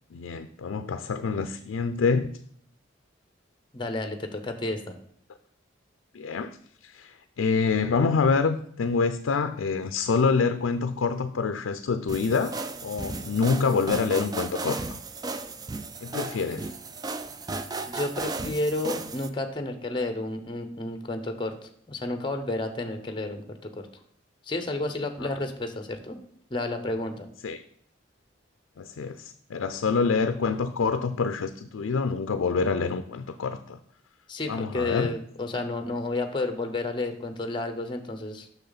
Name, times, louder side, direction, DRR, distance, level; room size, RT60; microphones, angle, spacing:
voice 1, 0.1-2.3 6.1-15.0 16.0-16.7 25.2-25.3 27.4-27.6 28.8-33.8 34.5-35.1, left 5 dB, 90° left, 9 dB, 0.4 m, -26 dB
voice 2, 3.7-4.9 17.8-23.8 24.4-26.2 26.5-27.3 34.3-38.5, left 2 dB, 25° left, 7 dB, 0.7 m, -31 dB
sound 1, 12.1-19.3, right 3 dB, 20° right, 0.3 m, -35 dB
6.5 x 6.2 x 4.0 m, 0.64 s
head